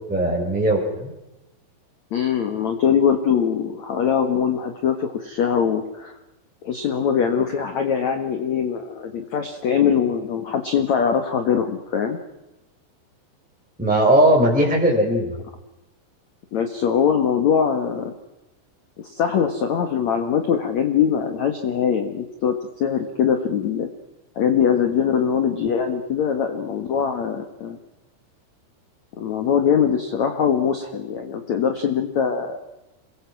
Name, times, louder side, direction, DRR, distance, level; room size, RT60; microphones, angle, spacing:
voice 1, 0.1-1.1 13.8-15.3, right 1 dB, ahead, -1 dB, 4.4 m, -18 dB
voice 2, 2.1-6.1 6.6-12.2 16.5-18.1 19.0-23.9 24.4-27.8 29.2-32.6, left 7 dB, 55° left, 6 dB, 2.1 m, -22 dB
28.0 x 22.0 x 6.0 m, 0.97 s
omnidirectional pair, 5.5 m